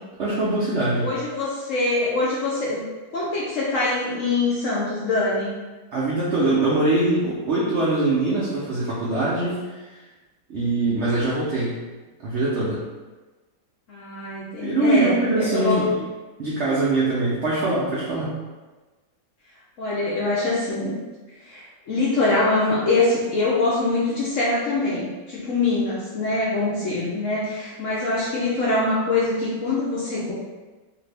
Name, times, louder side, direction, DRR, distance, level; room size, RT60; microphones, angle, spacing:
voice 1, 0.2-1.1 5.9-9.8 10.5-11.8 12.2-12.8 14.6-15.9 16.4-18.3, right 2 dB, 70° right, -7 dB, 0.6 m, -22 dB
voice 2, 1.0-2.9 3.1-5.5 13.9-15.9 19.8-20.9 21.4-30.3, left 2 dB, 70° left, -7 dB, 0.7 m, -24 dB
2.7 x 2.6 x 3.2 m, 1.2 s
omnidirectional pair, 1.9 m